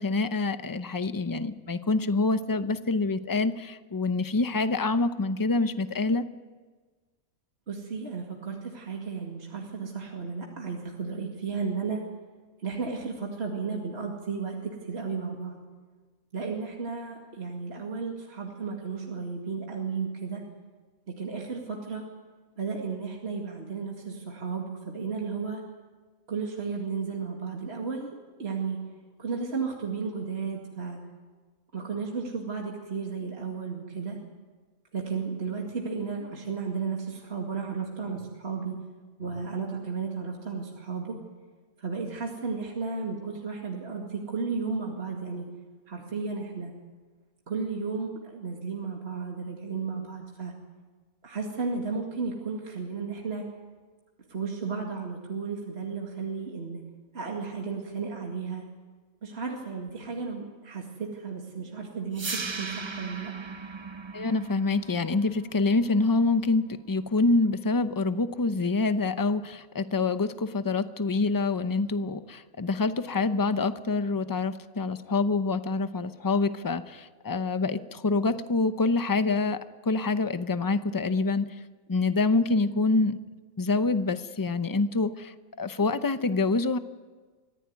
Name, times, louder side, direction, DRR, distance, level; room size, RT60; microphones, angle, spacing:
voice 1, 0.0-6.2 64.1-81.5 81.9-83.2 83.6-86.8, left 3 dB, 25° left, 11 dB, 0.5 m, -26 dB
voice 2, 7.7-12.0 12.6-15.6 16.3-20.4 21.1-22.0 22.6-25.6 26.3-28.1 28.4-28.8 29.2-31.0 31.7-34.2 34.9-38.8 39.2-41.2 41.8-45.5 45.9-46.7 47.5-50.5 51.2-53.5 54.3-56.8 57.1-58.6 59.2-63.3, right 5 dB, 45° right, 0 dB, 2.4 m, -34 dB
sound 1, 62.1-68.2, right 4 dB, 30° right, 0.5 m, -39 dB
24.5 x 15.5 x 9.4 m, 1.4 s
omnidirectional pair, 1.5 m